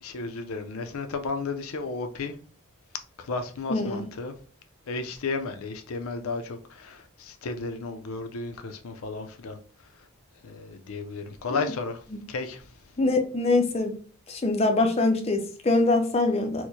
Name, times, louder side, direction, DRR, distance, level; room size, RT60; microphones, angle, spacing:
voice 1, 0.0-2.3 3.3-4.3 4.9-9.6 10.4-12.0 12.3-12.6, left 3 dB, 80° left, 0.5 m, -33 dB
voice 2, 3.7-4.0 11.5-11.6 12.1-12.2 13.0-13.9 14.3-16.7, left 2 dB, 30° left, 0.4 m, -24 dB
4.5 x 2.1 x 2.7 m
head